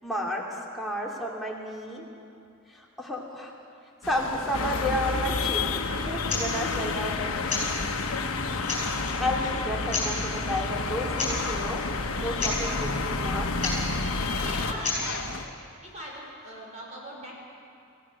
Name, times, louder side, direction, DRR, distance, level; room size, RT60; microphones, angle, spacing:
voice 1, 0.0-2.0 2.7-3.5 4.1-7.6 9.2-13.9, left 1 dB, ahead, -3 dB, 2.8 m, -32 dB
sound 1, 4.0-15.5, left 2 dB, 60° left, 1.4 m, -38 dB
sound 2, 4.5-14.7, left 4 dB, 80° left, 1.2 m, -30 dB
sound 3, 6.3-6.5 7.5-7.7 8.3-8.4 8.6-9.1 9.9-10.1 11.1-11.4 11.6-11.7 12.1-12.2 12.4-12.6 13.6-13.8 14.8-15.0, left 4 dB, 30° left, 6.8 m, -29 dB
voice 2, 14.4-15.5 15.8-17.3, equal, 35° right, -3 dB, 4.9 m, -40 dB
27.0 x 16.5 x 6.5 m, 2.5 s
head